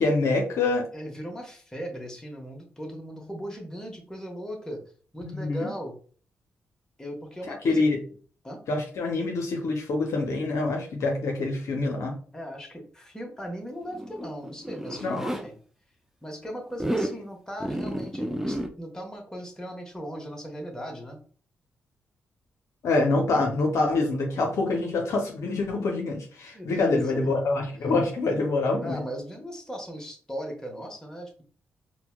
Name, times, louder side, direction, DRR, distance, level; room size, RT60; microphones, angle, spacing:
voice 1, 0.0-0.9 5.2-5.7 7.5-8.0 8.7-12.2 15.0-15.3 22.8-29.0, left 3 dB, 65° left, 1 dB, 0.6 m, -26 dB
voice 2, 0.9-4.8 5.1-5.9 7.0-7.8 8.4-8.6 12.3-15.5 16.2-21.2 26.5-27.4 28.8-31.4, equal, 10° left, 1 dB, 1.2 m, -38 dB
Zipper (clothing), 13.8-15.4 16.7-17.2 17.6-18.7, right 1 dB, 5° right, 0.5 m, -31 dB
4.3 x 2.1 x 2.2 m, 0.42 s
hypercardioid pair, 40°, 6 cm